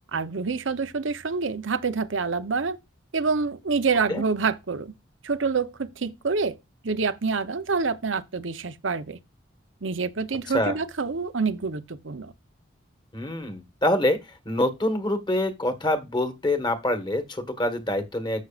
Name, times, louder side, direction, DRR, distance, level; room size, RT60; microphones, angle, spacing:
voice 1, 0.1-2.8 3.1-4.9 5.2-6.6 6.8-9.2 9.8-12.3, right 4 dB, 80° right, 0.8 m, -27 dB
voice 2, 13.1-14.2 14.4-18.4, left 1 dB, 25° left, 1.6 m, -25 dB
14.0 x 6.3 x 2.4 m
head